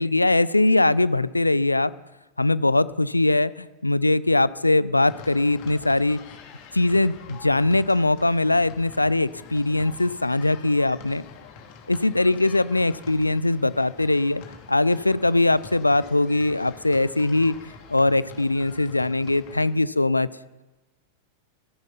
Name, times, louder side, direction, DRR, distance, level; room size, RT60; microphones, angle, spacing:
voice 1, 0.0-1.9 2.4-6.2 6.7-11.2 11.9-14.4 14.7-17.6 17.9-20.3, left 2 dB, 85° left, 19 dB, 0.4 m, -21 dB
sound 1, 5.0-19.6, left 6 dB, 45° left, 2.5 m, -46 dB
15.5 x 14.5 x 5.6 m, 1.1 s
figure-of-eight pair, 90°, 0 cm